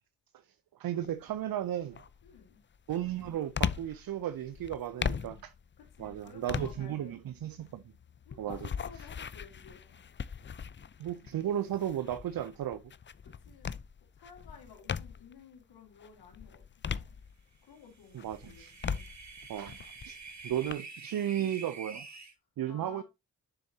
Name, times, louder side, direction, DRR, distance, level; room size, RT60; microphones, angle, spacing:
voice 1, 0.8-2.0 2.9-5.5 6.0-7.8 8.4-8.6 11.0-12.8 18.1-18.7 19.5-19.8 20.0-20.2 20.4-22.1 22.6-23.0, right 11 dB, 65° right, 0.6 m, -34 dB
sound 1, 1.0-1.4 1.9-15.4 15.9-17.7 18.1-20.7, left 7 dB, 30° left, 0.5 m, -39 dB
voice 2, 2.2-2.6 5.8-7.2 8.3-10.0 13.2-13.7 14.1-17.2 17.6-19.1 19.4-19.5 21.1-21.3 22.7-23.0, left 6 dB, 85° left, 2.2 m, -54 dB
sound 2, 18.0-22.3, right 4 dB, 50° right, 1.8 m, -47 dB
7.0 x 6.9 x 2.8 m
supercardioid pair, 40°, 37 cm